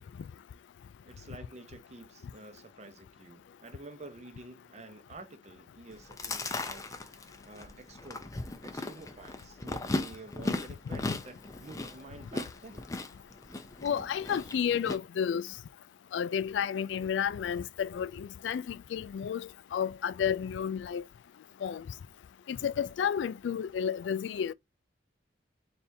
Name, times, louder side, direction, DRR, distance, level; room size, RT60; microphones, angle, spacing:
voice 1, 1.0-6.9 7.2-8.3 8.6-12.8, right 2 dB, 35° right, 0.7 m, -49 dB
Chewing mastication, 5.9-15.0, left 2 dB, 20° left, 0.5 m, -37 dB
voice 2, 13.8-15.4 16.1-21.0 21.6-21.8 22.5-24.5, left 8 dB, 80° left, 0.3 m, -31 dB
4.2 x 3.4 x 2.6 m
head